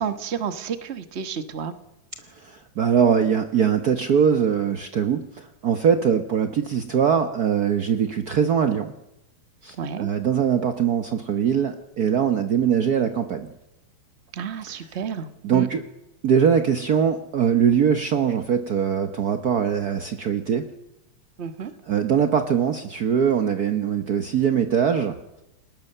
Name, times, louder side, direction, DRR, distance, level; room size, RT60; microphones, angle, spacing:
voice 1, 0.0-1.7 9.8-10.1 14.3-15.7 21.4-21.7, right 7 dB, 45° right, 11 dB, 0.9 m, -30 dB
voice 2, 2.4-8.9 9.6-13.5 14.7-14.8 15.4-15.8 16.2-20.7 21.9-25.2, right 7 dB, 70° right, 8 dB, 0.8 m, -22 dB
29.5 x 20.0 x 6.7 m, 0.91 s
omnidirectional pair, 3.3 m